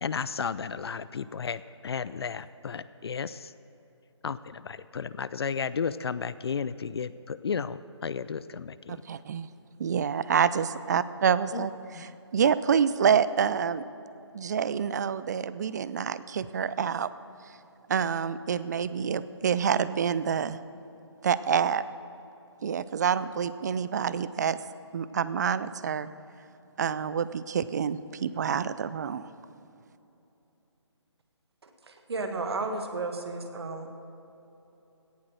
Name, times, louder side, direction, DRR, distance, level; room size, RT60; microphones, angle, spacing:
voice 1, 0.0-3.5 4.2-8.8 11.5-11.7 11.9-12.0, left 6 dB, 60° left, 16 dB, 0.4 m, -33 dB
voice 2, 8.9-9.5 9.8-13.8 14.3-17.1 17.9-20.6 21.2-21.8 22.6-24.6 24.9-26.1 26.8-29.3, right 7 dB, 35° right, 16 dB, 0.4 m, -27 dB
voice 3, 31.6-33.9, right 3 dB, 60° right, 6 dB, 1.7 m, -33 dB
17.0 x 7.8 x 6.3 m, 2.9 s
figure-of-eight pair, 150°, 15 cm